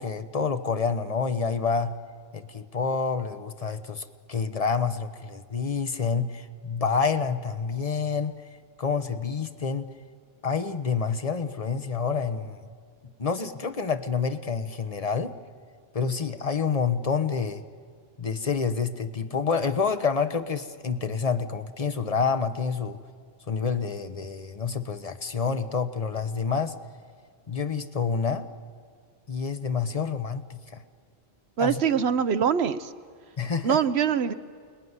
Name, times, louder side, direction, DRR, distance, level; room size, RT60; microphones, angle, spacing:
voice 1, 0.0-2.0 2.3-8.4 8.8-9.9 10.4-12.6 13.2-15.3 15.9-17.6 18.2-23.0 23.5-26.7 27.5-28.5 29.3-30.8 31.6-31.8 33.4-33.8, left 5 dB, 35° left, 10 dB, 1.1 m, -28 dB
voice 2, 31.6-32.9 33.6-34.3, right 7 dB, 80° right, 13 dB, 1.2 m, -23 dB
29.5 x 20.5 x 9.7 m, 2.1 s
omnidirectional pair, 1.1 m